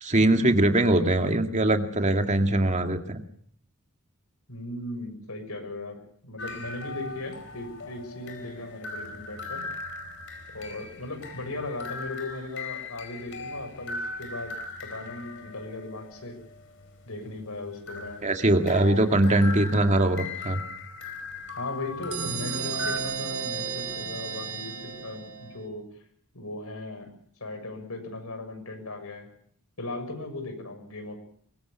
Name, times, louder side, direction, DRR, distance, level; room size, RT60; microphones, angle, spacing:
voice 1, 0.0-3.2 18.2-20.6, right 1 dB, 35° right, 5 dB, 2.2 m, -22 dB
voice 2, 4.5-9.6 10.5-14.5 14.8-16.3 17.1-18.2 18.7-19.3 21.6-25.9 26.3-27.1 27.4-29.3 29.8-31.2, left 2 dB, 75° left, 6 dB, 6.8 m, -37 dB
sound 1, 6.4-23.0, left 3 dB, 60° left, 4.7 m, -39 dB
sound 2, 22.1-25.7, right 5 dB, 80° right, 6.9 m, -33 dB
24.0 x 22.0 x 7.0 m, 0.63 s
head